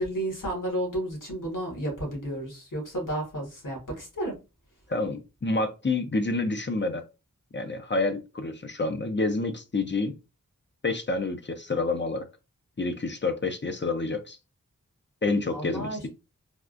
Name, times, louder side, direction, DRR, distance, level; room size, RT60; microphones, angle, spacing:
voice 1, 0.0-4.3 15.5-16.1, right 1 dB, 70° left, 1.6 m, -32 dB
voice 2, 4.9-7.0 7.5-10.2 10.8-12.2 12.8-14.4 15.2-16.1, left 3 dB, 35° left, 0.5 m, -28 dB
3.5 x 2.3 x 2.5 m
wide cardioid pair, 40°, 33 cm